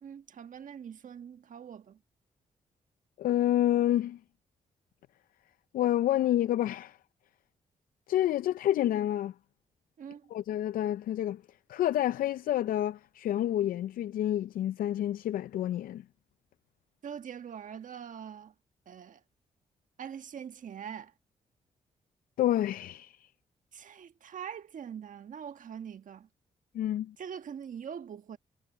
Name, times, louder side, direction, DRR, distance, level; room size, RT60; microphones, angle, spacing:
voice 1, 0.0-2.0 10.0-10.3 17.0-18.5 18.9-19.2 20.0-21.1 23.7-26.3 27.2-28.4, right 8 dB, 60° right, 1.5 m, -43 dB
voice 2, 3.2-4.2 5.7-7.0 8.1-9.3 10.3-11.4 11.7-16.0 22.4-23.3 26.7-27.1, left 12 dB, 75° left, 0.5 m, -28 dB
supercardioid pair, 55°, 15 cm